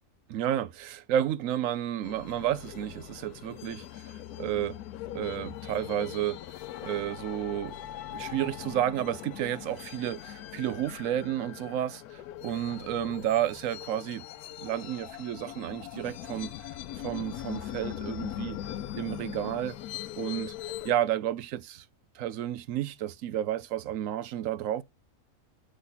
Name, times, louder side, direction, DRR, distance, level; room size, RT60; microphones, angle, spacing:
voice 1, 0.3-4.8 5.1-6.4 6.8-7.8 8.1-14.2 14.6-16.7 17.0-18.6 19.0-19.8 20.2-21.9 22.1-24.8, right 11 dB, 70° right, 0.9 m, -31 dB
sound 1, 2.0-20.9, left 12 dB, 90° left, 1.1 m, -41 dB
7.5 x 4.3 x 3.9 m
omnidirectional pair, 1.6 m